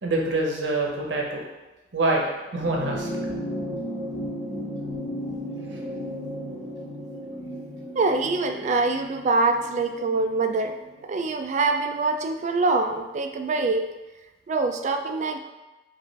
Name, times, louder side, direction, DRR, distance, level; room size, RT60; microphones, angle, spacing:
voice 1, 0.0-1.4 1.9-2.2 2.5-3.1, right 2 dB, 75° right, -1 dB, 0.8 m, -25 dB
sound 1, 2.5-11.2 12.4-12.5, equal, 60° left, 1.1 m, -34 dB
voice 2, 8.0-10.7 11.0-13.8 14.5-15.4, right 3 dB, 40° right, 6 dB, 0.3 m, -24 dB
5.1 x 2.5 x 3.3 m, 1.1 s
head